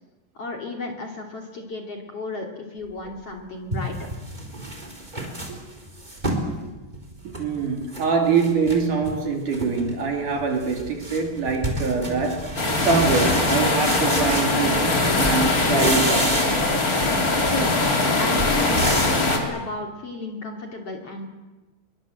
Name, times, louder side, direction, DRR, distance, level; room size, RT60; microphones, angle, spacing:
voice 1, 0.3-4.0 17.5-17.9 18.2-21.3, left 3 dB, 40° left, 3.3 m, -33 dB
sound 1, 3.1-3.2 3.7-6.5 6.9-8.1 8.3-9.2 9.5-9.9 10.2-15.0 15.2-16.7 17.0-19.3, right 1 dB, 10° right, 3.8 m, -30 dB
voice 2, 7.2-16.4, right 4 dB, 50° right, 3.8 m, -24 dB
sound 2, 12.6-19.4, left 2 dB, 25° left, 2.8 m, -21 dB
26.0 x 23.0 x 7.8 m
omnidirectional pair, 4.9 m